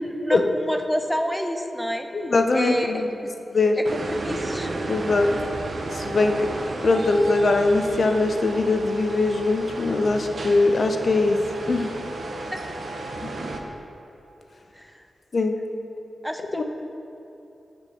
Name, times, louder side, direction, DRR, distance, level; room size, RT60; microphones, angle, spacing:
voice 1, 0.0-2.1 2.5-3.0 3.8-4.7 12.5-12.6 14.7-14.9 16.2-16.6, equal, ahead, 5 dB, 0.5 m, -28 dB
voice 2, 2.1-3.1 3.5-3.8 4.9-5.3 6.0-6.5 6.8-11.4 11.7-11.9 15.3-15.6 16.5-16.6, left 3 dB, 55° left, 5 dB, 0.5 m, -21 dB
sound 1, 3.8-13.6, right 2 dB, 60° right, 0.5 m, -33 dB
6.6 x 3.5 x 6.2 m, 2.8 s
wide cardioid pair, 75°, 0 cm